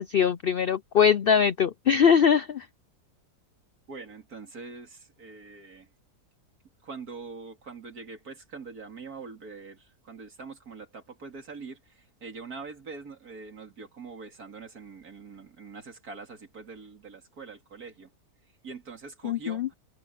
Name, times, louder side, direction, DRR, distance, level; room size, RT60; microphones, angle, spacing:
voice 1, 0.0-2.7 19.2-19.7, left 7 dB, 65° left, 0.5 m, -22 dB
voice 2, 3.9-5.9 6.8-11.8 12.2-18.1 18.6-19.8, right 4 dB, 70° right, 3.4 m, -43 dB
omnidirectional pair, 1.6 m